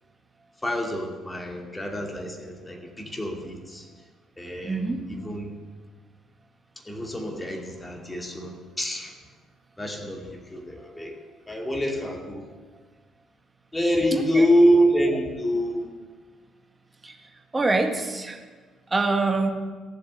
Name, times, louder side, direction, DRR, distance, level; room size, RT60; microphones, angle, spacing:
voice 1, 0.6-3.9 4.4-5.5 6.9-9.1 9.8-11.1 11.5-12.5 13.7-15.9, equal, 15° left, 2 dB, 2.6 m, -26 dB
voice 2, 4.6-5.0 14.1-14.5 17.0-17.1 17.5-18.4 18.9-19.5, right 3 dB, 20° right, 4 dB, 1.7 m, -25 dB
15.5 x 7.6 x 6.8 m, 1.4 s
figure-of-eight pair, 45°, 0 cm